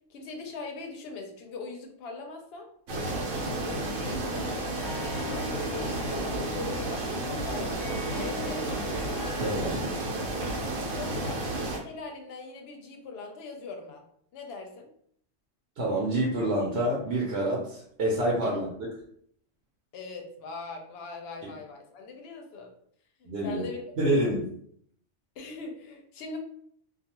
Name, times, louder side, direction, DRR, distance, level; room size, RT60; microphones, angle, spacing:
voice 1, 0.1-2.7 3.5-8.6 11.0-14.0 14.3-14.9 18.4-18.6 19.9-22.7 23.2-23.8 25.4-26.4, left 3 dB, 60° left, 3 dB, 0.7 m, -41 dB
sound 1, 2.9-11.8, right 2 dB, 85° right, 1.0 m, -32 dB
Harp, 4.7-10.2, left 4 dB, 90° left, 1.0 m, -42 dB
voice 2, 9.4-9.8 15.8-18.7 21.4-21.5 23.2-23.6 24.0-24.5, right 1 dB, 60° right, -4 dB, 0.9 m, -27 dB
2.3 x 2.3 x 2.9 m, 0.65 s
omnidirectional pair, 1.3 m